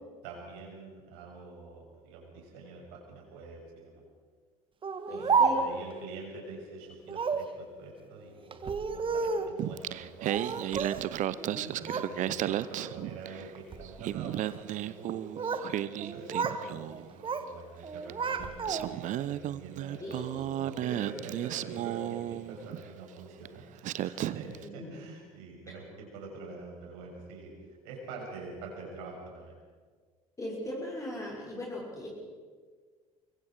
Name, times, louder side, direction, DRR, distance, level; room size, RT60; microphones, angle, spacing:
voice 1, 0.2-4.0 5.1-10.9 11.2-15.2 15.5-27.5 27.8-29.6, right 3 dB, 60° right, 0 dB, 6.8 m, -46 dB
Speech, 4.8-5.9 7.1-7.5 8.5-9.6 10.3-11.1 11.4-12.1 12.5-12.9 13.6-13.9 15.0-15.7 16.0-16.6 16.9-17.5 17.8-19.1, right 5 dB, 30° right, 1.6 m, -31 dB
voice 2, 5.1-5.9 11.4-12.1 20.0-20.5 24.6-25.0 30.4-32.1, left 1 dB, 15° left, -4 dB, 5.8 m, -39 dB
Singing, 9.6-13.5 13.8-17.1 18.1-18.2 18.6-22.8 23.4-23.6 23.8-24.6, right 12 dB, 45° right, 0.7 m, -34 dB
24.5 x 22.5 x 4.8 m, 1.5 s
figure-of-eight pair, 60°, 18 cm